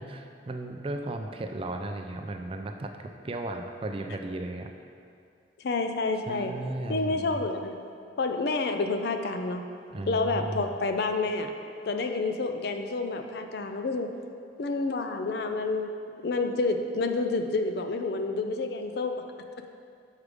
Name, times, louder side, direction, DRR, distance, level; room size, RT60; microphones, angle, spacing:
voice 1, 0.0-4.7 6.3-7.4 9.9-10.7, right 2 dB, 30° right, 4 dB, 0.4 m, -35 dB
voice 2, 5.6-6.5 6.9-7.7 8.2-9.6 10.1-11.5 11.9-14.1 14.6-15.9 16.2-19.2, left 3 dB, 60° left, 6 dB, 0.4 m, -29 dB
6.5 x 4.8 x 5.0 m, 2.4 s
head